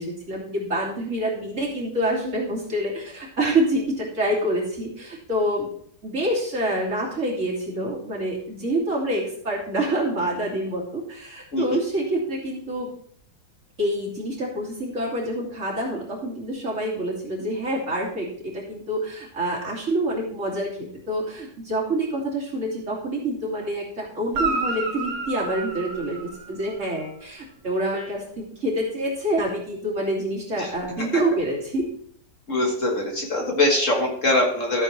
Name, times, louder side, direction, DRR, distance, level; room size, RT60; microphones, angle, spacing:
voice 1, 0.0-5.7 6.0-12.9 13.8-31.8, right 1 dB, 40° right, -4 dB, 3.1 m, -27 dB
Guitar, 24.3-26.9 30.7-30.8, right 3 dB, 65° right, 2.2 m, -30 dB
voice 2, 32.5-34.8, left 2 dB, 45° left, 1 dB, 1.7 m, -22 dB
13.5 x 7.5 x 3.3 m, 0.64 s
omnidirectional pair, 2.0 m